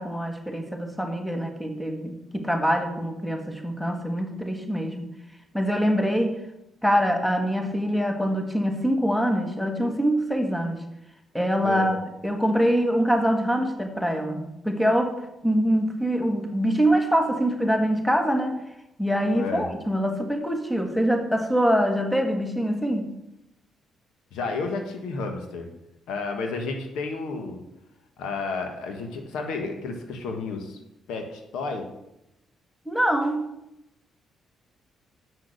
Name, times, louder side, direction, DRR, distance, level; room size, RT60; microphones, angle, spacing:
voice 1, 0.0-5.1 5.5-6.4 6.8-10.8 11.3-15.2 15.4-18.6 19.0-23.1 32.8-33.5, equal, 5° left, 4 dB, 1.4 m, -24 dB
voice 2, 11.6-11.9 19.3-19.7 24.3-25.7 26.1-27.6 28.2-30.8 31.1-31.9, left 4 dB, 85° left, 4 dB, 1.3 m, -31 dB
6.9 x 6.4 x 6.6 m, 0.88 s
cardioid pair, 90°, 0 cm